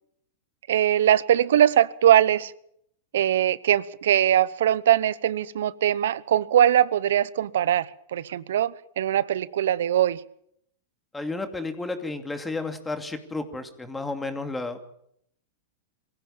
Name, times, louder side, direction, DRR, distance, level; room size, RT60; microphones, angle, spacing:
voice 1, 0.7-2.5 3.1-10.2, right 11 dB, 75° right, 0.8 m, -21 dB
voice 2, 11.1-14.8, left 3 dB, 10° left, 2.6 m, -32 dB
23.5 x 16.0 x 7.3 m
hypercardioid pair, 110°, 0 cm